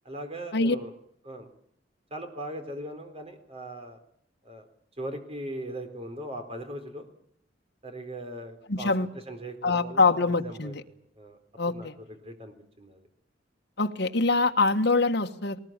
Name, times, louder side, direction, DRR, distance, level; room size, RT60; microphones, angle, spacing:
voice 1, 0.0-0.9 1.2-1.5 2.1-4.0 4.4-4.7 5.0-7.1 7.8-11.4 11.7-13.0, right 1 dB, 35° right, 6 dB, 4.0 m, -39 dB
voice 2, 8.7-9.1 9.6-10.8 11.6-11.9 13.8-15.6, left 3 dB, 65° left, 5 dB, 1.5 m, -24 dB
20.0 x 19.5 x 8.9 m, 0.68 s
head